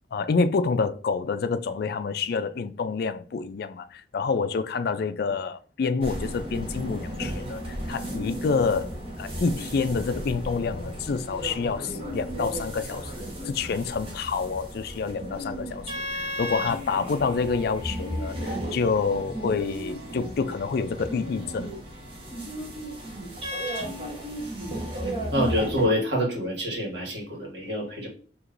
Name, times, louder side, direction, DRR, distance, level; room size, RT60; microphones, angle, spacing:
voice 1, 0.1-8.9 9.2-21.7, left 4 dB, 60° left, 0.4 m, -28 dB
sound 1, 6.0-25.9, equal, 30° right, 1.2 m, -34 dB
voice 2, 25.3-28.1, equal, 90° right, 1.7 m, -26 dB
4.6 x 2.9 x 2.5 m
head